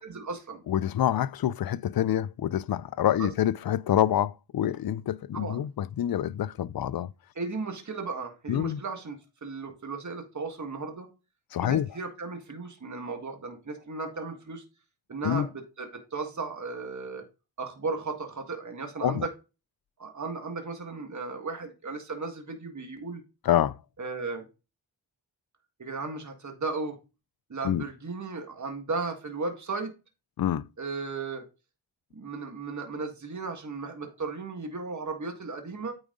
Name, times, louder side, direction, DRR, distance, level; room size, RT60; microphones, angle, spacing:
voice 1, 0.0-0.6 3.2-3.3 5.3-5.7 7.4-9.2 9.4-11.1 11.6-14.6 15.1-17.2 17.6-19.3 20.0-23.2 24.0-24.5 25.8-27.0 27.5-29.9 30.8-31.4 32.1-35.9, right 4 dB, 40° right, 1.8 m, -35 dB
voice 2, 0.7-7.1 8.5-8.8 11.5-11.9 15.2-15.5 19.0-19.3 23.4-23.8 27.6-27.8 30.4-30.7, left 11 dB, 55° left, 0.5 m, -26 dB
9.1 x 4.9 x 3.8 m
cardioid pair, 65°, 44 cm